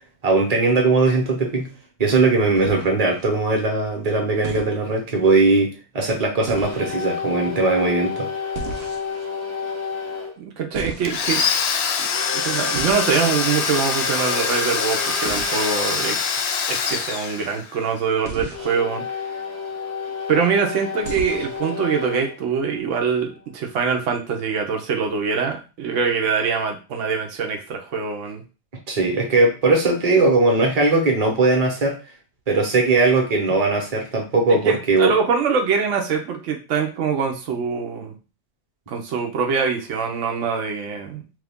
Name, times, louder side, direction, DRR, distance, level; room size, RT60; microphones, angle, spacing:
voice 1, 0.2-1.7 2.0-5.7 5.9-8.3 28.9-31.9 32.5-35.1, right 3 dB, 35° right, 1 dB, 1.0 m, -19 dB
sound 1, 2.6-3.2 4.4-4.8 6.5-6.9 8.5-9.3 10.7-11.5 12.7-13.1 15.3-15.5 18.2-18.8 21.0-21.6, right 4 dB, 60° right, 0.9 m, -34 dB
sound 2, 6.5-10.4 12.0-16.2 18.5-23.4, left 4 dB, 15° left, 0.6 m, -31 dB
voice 2, 10.4-11.4 12.3-16.2 16.7-19.0 20.3-28.4 34.6-38.1 38.9-41.2, right 6 dB, 85° right, 3 dB, 1.0 m, -24 dB
Domestic sounds home sounds, 11.1-17.8, left 6 dB, 65° left, 0.8 m, -24 dB
3.2 x 2.5 x 3.5 m, 0.32 s
omnidirectional pair, 1.2 m